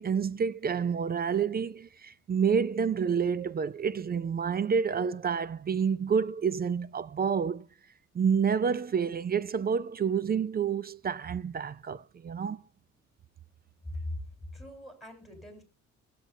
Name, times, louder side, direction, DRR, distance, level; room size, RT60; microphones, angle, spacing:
voice 1, 0.0-7.6 8.1-12.6, right 6 dB, 30° right, 0.4 m, -29 dB
voice 2, 13.8-14.2 14.5-15.6, left 1 dB, ahead, 4.0 m, -40 dB
21.0 x 7.5 x 2.7 m
cardioid pair, 90°, 30 cm